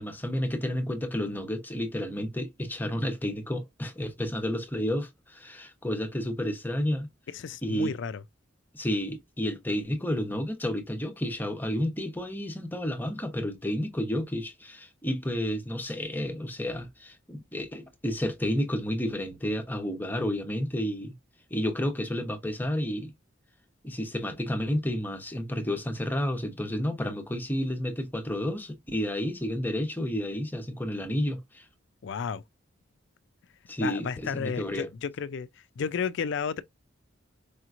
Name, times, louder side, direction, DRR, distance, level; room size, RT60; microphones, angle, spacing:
voice 1, 0.0-7.1 7.6-8.0 8.7-21.1 21.5-23.1 23.8-31.6 33.7-34.9, left 1 dB, 10° left, 0.8 m, -31 dB
voice 2, 7.3-8.2 32.0-32.4 33.8-35.5 35.8-36.6, left 6 dB, 65° left, 0.4 m, -32 dB
4.9 x 3.0 x 2.4 m
head